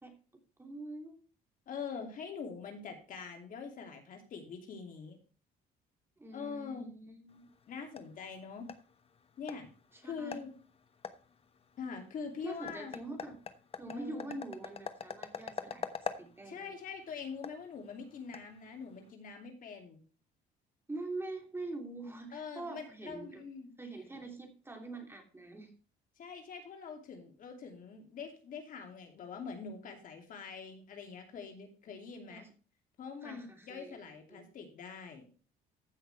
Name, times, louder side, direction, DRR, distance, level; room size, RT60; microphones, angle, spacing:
voice 1, 0.6-1.2 6.2-7.5 9.9-10.4 12.4-13.4 13.8-16.7 20.9-23.4 23.8-25.7 32.3-32.5 33.2-34.5, right 2 dB, 15° right, 3 dB, 3.0 m, -44 dB
voice 2, 1.7-5.2 6.3-6.9 7.7-8.7 9.4-9.7 10.0-10.5 11.8-13.0 13.9-14.3 16.5-20.0 22.3-23.7 26.2-32.5 33.0-35.3, left 5 dB, 55° left, 3 dB, 2.8 m, -44 dB
sound 1, 7.3-19.1, left 6 dB, 35° left, 1.1 m, -46 dB
15.0 x 6.2 x 3.3 m, 0.37 s
cardioid pair, 110°, 17 cm